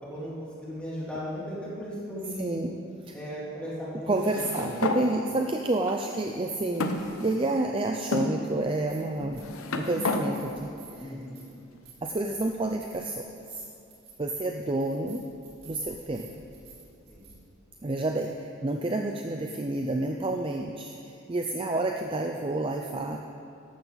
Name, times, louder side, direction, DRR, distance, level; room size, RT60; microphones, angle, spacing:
voice 1, 0.0-2.6 3.1-4.2 4.5-4.9 11.0-11.4 17.1-17.3, equal, 5° left, -8 dB, 3.0 m, -37 dB
voice 2, 2.4-2.7 3.0-3.1 4.1-9.4 9.7-10.7 11.0-11.1 12.0-13.6 14.2-15.2 15.7-16.3 17.8-23.2, right 2 dB, 25° right, 3 dB, 0.4 m, -29 dB
sound 1, 4.2-5.0 5.9-6.0 6.8-7.6 8.1-8.3 9.2-10.2, left 3 dB, 75° left, 0.9 m, -31 dB
sound 2, 8.8-9.6 9.8-17.3, right 4 dB, 45° right, 3.0 m, -53 dB
14.0 x 11.5 x 4.0 m, 2.6 s
head